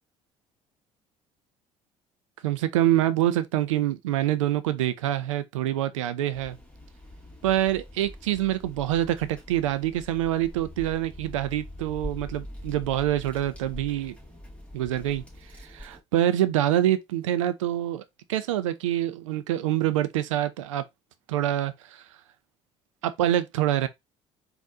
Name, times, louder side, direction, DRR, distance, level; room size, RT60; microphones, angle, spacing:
voice 1, 2.4-6.6 7.4-14.1 14.7-15.2 15.7-18.0 18.3-20.8 21.3-22.0 23.0-23.9, right 12 dB, 80° right, 0.5 m, -26 dB
sound 1, 6.3-16.0, left 1 dB, 10° left, 1.8 m, -43 dB
4.0 x 2.6 x 3.6 m
hypercardioid pair, 55°, 16 cm